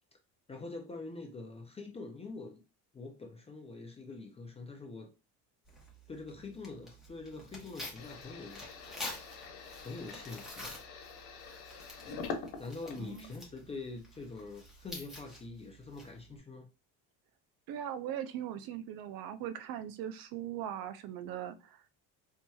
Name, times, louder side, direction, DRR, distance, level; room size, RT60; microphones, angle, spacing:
voice 1, 0.5-2.6 2.9-5.1 6.1-8.8 9.8-10.8 12.6-16.7, left 3 dB, 15° left, 0.3 m, -45 dB
Tearing, 5.6-16.4, left 1 dB, ahead, 0.8 m, -49 dB
sound 1, 8.0-13.5 13.9-14.6, left 5 dB, 80° left, 1.2 m, -45 dB
voice 2, 13.0-13.3 17.7-21.8, right 10 dB, 60° right, 0.5 m, -40 dB
4.4 x 2.8 x 2.3 m
cardioid pair, 170°, 39 cm